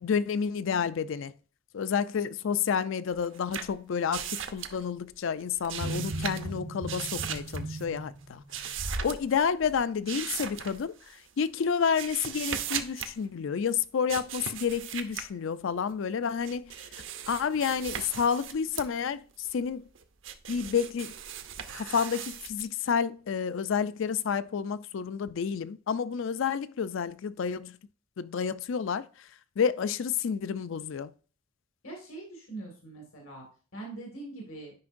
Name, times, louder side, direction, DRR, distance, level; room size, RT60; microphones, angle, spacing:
voice 1, 0.0-1.3 1.7-8.4 9.0-10.9 11.4-16.7 17.3-19.2 19.5-19.8 20.5-21.1 21.7-27.7 28.2-29.0 29.6-31.1, left 6 dB, 65° left, 0.4 m, -30 dB
sound 1, 3.1-5.1 5.4-6.6 6.8-7.8 8.5-9.4 10.1-11.2 11.6-13.1 14.1-15.3 16.2-18.9 19.4-22.6, right 9 dB, 60° right, 0.6 m, -38 dB
sound 2, 5.7-9.2 9.6-9.8, right 1 dB, 90° right, 1.3 m, -37 dB
voice 2, 31.8-33.5 33.7-34.7, right 2 dB, 85° left, 2.0 m, -42 dB
9.5 x 5.2 x 2.5 m
head